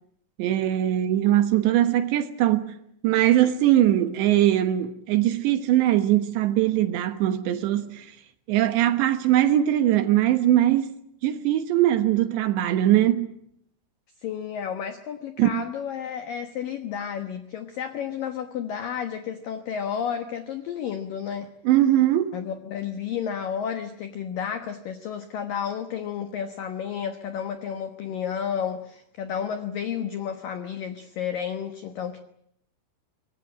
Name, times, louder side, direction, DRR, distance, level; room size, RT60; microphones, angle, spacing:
voice 1, 0.4-2.7 3.0-8.1 8.5-10.9 11.2-13.3 15.4-15.6 21.7-22.4, right 12 dB, 70° right, 3.0 m, -21 dB
voice 2, 14.2-21.5 22.3-32.2, left 8 dB, 75° left, 2.0 m, -31 dB
24.5 x 20.5 x 8.8 m
omnidirectional pair, 5.9 m